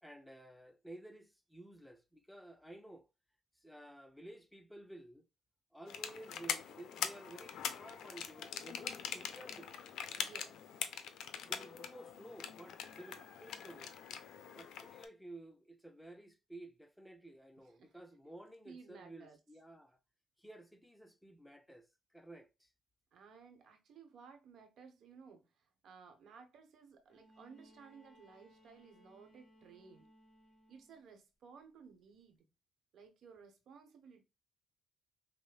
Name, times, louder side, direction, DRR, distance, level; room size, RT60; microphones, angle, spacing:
voice 1, 0.0-3.1 3.6-5.2 5.7-9.7 11.4-14.0 14.5-20.0 20.4-22.7, right 1 dB, 5° left, 0.5 m, -54 dB
sound 1, 5.9-15.0, left 8 dB, 75° left, 0.4 m, -43 dB
voice 2, 10.1-10.7 17.6-18.0 18.6-19.4 23.1-30.1 30.7-32.4 32.9-34.2, right 5 dB, 65° right, 1.0 m, -57 dB
Bowed string instrument, 27.1-31.1 32.4-32.5, equal, 25° left, 1.8 m, -65 dB
5.1 x 2.1 x 2.2 m
cardioid pair, 90°, 0 cm